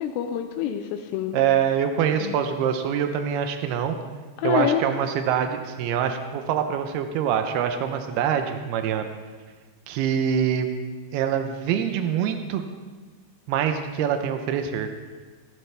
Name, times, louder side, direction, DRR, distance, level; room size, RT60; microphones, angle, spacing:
voice 1, 0.0-1.4 2.2-2.4 4.4-4.8, left 9 dB, 90° left, 5 dB, 2.4 m, -26 dB
voice 2, 1.3-4.0 4.4-9.1 9.9-10.7 11.1-12.6 13.5-14.9, right 8 dB, 80° right, 7 dB, 2.3 m, -24 dB
15.5 x 14.5 x 3.4 m, 1.4 s
omnidirectional pair, 5.5 m